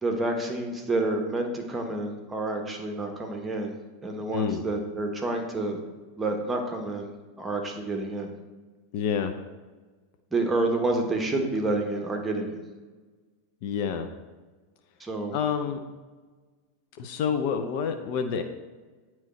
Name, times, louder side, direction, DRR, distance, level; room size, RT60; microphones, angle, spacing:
voice 1, 0.0-3.7 4.0-5.8 6.2-7.1 7.4-8.3 10.3-12.5 15.0-15.4, right 2 dB, 15° right, 2 dB, 1.1 m, -28 dB
voice 2, 8.9-9.3 13.6-14.1 15.3-15.8 17.0-18.4, left 6 dB, 55° left, 6 dB, 0.5 m, -28 dB
8.9 x 3.1 x 4.2 m, 1.3 s
figure-of-eight pair, 90°, 0 cm